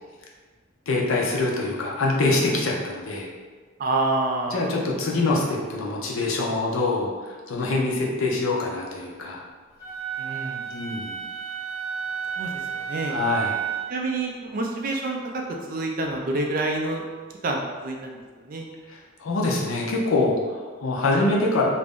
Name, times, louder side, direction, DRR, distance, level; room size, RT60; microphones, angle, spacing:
voice 1, 0.9-3.3 4.5-9.4 10.7-11.2 13.1-13.6 18.9-21.7, left 2 dB, 75° left, -2 dB, 0.5 m, -25 dB
voice 2, 3.8-4.6 10.2-10.7 12.3-13.2 13.9-15.4 15.7-17.0 17.4-18.2 18.4-18.7, right 2 dB, 40° right, 1 dB, 0.3 m, -27 dB
Wind instrument woodwind instrument, 9.8-13.9, right 8 dB, 20° left, 0.6 m, -31 dB
2.5 x 2.0 x 3.5 m, 1.4 s
head